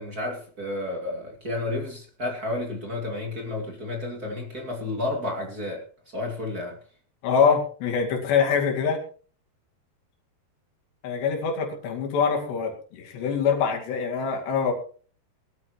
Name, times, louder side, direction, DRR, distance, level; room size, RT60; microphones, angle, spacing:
voice 1, 0.0-6.8, left 2 dB, 30° right, 2 dB, 2.1 m, -31 dB
voice 2, 7.2-9.0 11.0-14.7, left 6 dB, 85° left, 2 dB, 4.6 m, -24 dB
21.5 x 13.0 x 3.0 m, 0.41 s
omnidirectional pair, 4.8 m